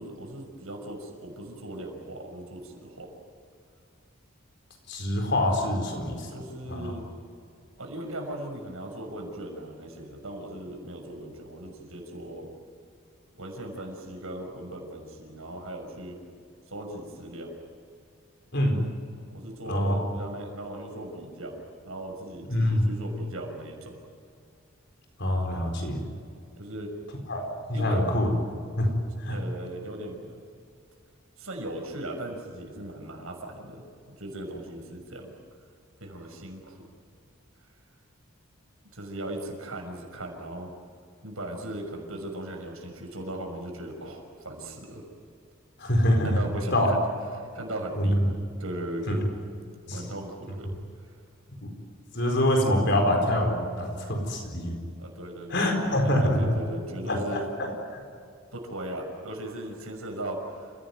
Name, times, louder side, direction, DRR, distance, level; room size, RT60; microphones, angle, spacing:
voice 1, 0.0-3.1 6.3-7.0 7.8-12.5 13.4-16.2 16.7-17.5 19.3-21.6 21.8-24.0 26.6-26.9 27.7-28.0 29.3-30.4 31.4-35.3 36.0-36.8 38.9-40.7 41.2-45.0 46.2-47.1 47.3-48.2 48.6-49.2 49.8-50.7 55.0-57.4 58.5-60.7, right 1 dB, 80° right, 2 dB, 6.1 m, -38 dB
voice 2, 4.9-6.3 6.7-6.9 18.5-18.9 19.6-20.1 22.5-22.8 25.2-26.1 27.3-28.3 28.8-29.0 29.2-29.4 45.8-46.4 46.7-47.0 48.0-48.2 49.1-49.2 49.9-50.0 51.6-51.7 52.1-54.7 55.5-56.5 57.1-57.7, left 1 dB, 55° left, 3 dB, 4.5 m, -25 dB
29.0 x 17.0 x 9.4 m, 2.3 s
head